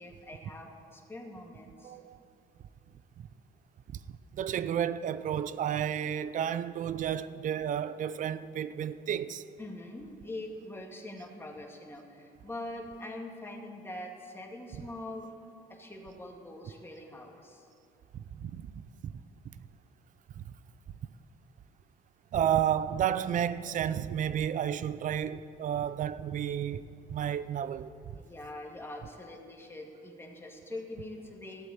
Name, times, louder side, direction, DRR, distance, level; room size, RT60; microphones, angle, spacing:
voice 1, 0.0-2.0 9.6-15.3 15.7-17.7 28.2-31.7, left 1 dB, 15° left, 2.2 m, -43 dB
voice 2, 1.8-2.2 3.2-3.3 4.4-9.4 18.1-18.7 19.0-19.2 20.4-20.5 22.3-27.9, right 9 dB, 50° right, 0.6 m, -31 dB
14.5 x 7.8 x 9.6 m
cardioid pair, 110°, 17 cm